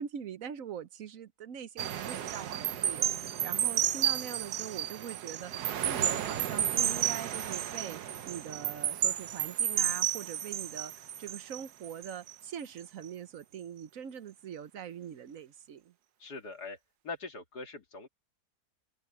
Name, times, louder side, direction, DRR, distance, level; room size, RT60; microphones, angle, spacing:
voice 1, 0.0-8.0 8.3-15.9, right 8 dB, 65° right, 1.2 m, -43 dB
sound 1, 1.8-12.4 12.8-13.1, right 10 dB, 85° right, 1.5 m, -32 dB
voice 2, 16.2-16.8 17.0-18.1, left 3 dB, 90° left, 3.0 m, -42 dB
omnidirectional pair, 1.7 m